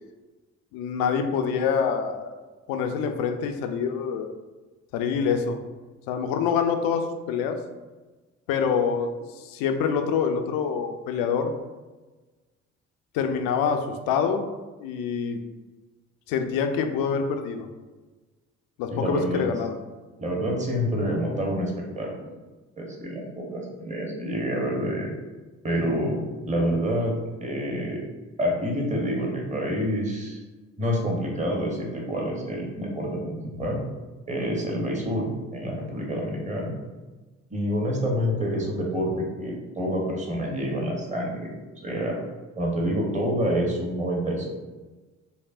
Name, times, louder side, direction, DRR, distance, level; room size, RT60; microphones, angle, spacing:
voice 1, 0.7-2.3 2.7-4.3 4.9-5.6 6.1-7.6 8.5-11.5 13.1-14.4 14.8-15.4 16.3-17.7 18.8-19.8, left 6 dB, 65° left, 6 dB, 0.5 m, -26 dB
voice 2, 18.9-19.5 20.2-22.1 22.8-25.1 25.6-28.0 28.4-30.4 30.8-33.8 34.3-36.7 37.5-41.5 41.8-42.2 42.6-44.5, equal, 20° right, -1 dB, 1.0 m, -27 dB
5.3 x 2.1 x 2.5 m, 1.2 s
hypercardioid pair, 50°, 38 cm